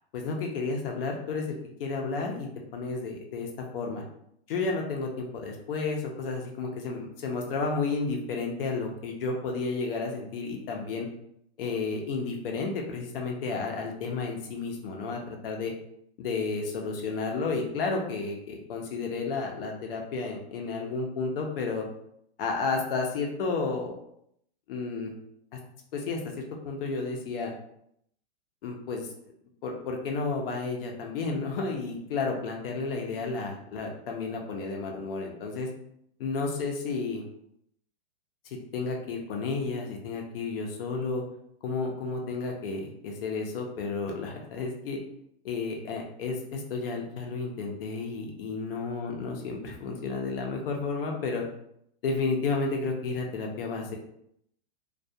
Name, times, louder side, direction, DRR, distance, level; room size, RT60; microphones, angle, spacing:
voice 1, 0.1-4.0 4.5-11.1 11.6-15.7 16.2-21.8 22.4-23.9 24.7-25.1 25.9-27.5 28.6-29.1 29.6-35.7 36.2-37.2 38.7-41.2 41.6-45.0 45.4-51.4 52.0-54.0, left 4 dB, 60° left, 1 dB, 0.6 m, -32 dB
2.3 x 2.2 x 2.6 m, 0.72 s
hypercardioid pair, 155°, 32 cm